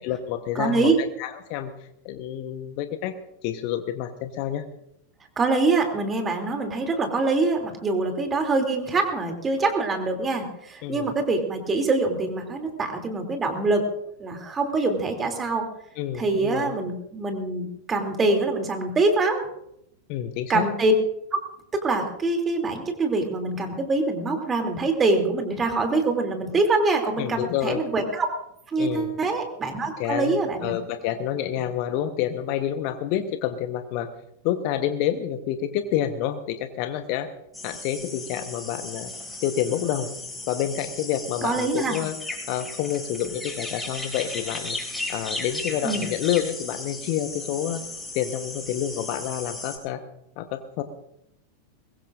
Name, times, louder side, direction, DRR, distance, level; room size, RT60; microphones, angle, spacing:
voice 1, 0.0-3.1 3.4-4.7 10.8-11.1 16.0-16.7 20.1-20.7 27.2-27.8 28.8-29.2 30.0-30.4 30.6-34.1 34.4-37.3 37.6-39.1 39.4-40.1 40.5-42.1 42.5-44.8 45.1-47.8 48.1-50.0 50.4-50.8, left 10 dB, 45° left, 9 dB, 1.1 m, -28 dB
voice 2, 0.5-1.0 5.4-13.9 14.2-15.7 16.1-19.5 20.5-20.9 21.3-21.4 21.7-28.3 28.7-30.7 41.4-42.0 45.8-46.0, right 3 dB, 20° right, 4 dB, 2.9 m, -24 dB
sound 1, 37.5-49.8, left 2 dB, 5° left, 5.5 m, -36 dB
22.0 x 21.5 x 2.6 m, 0.77 s
figure-of-eight pair, 90°, 0 cm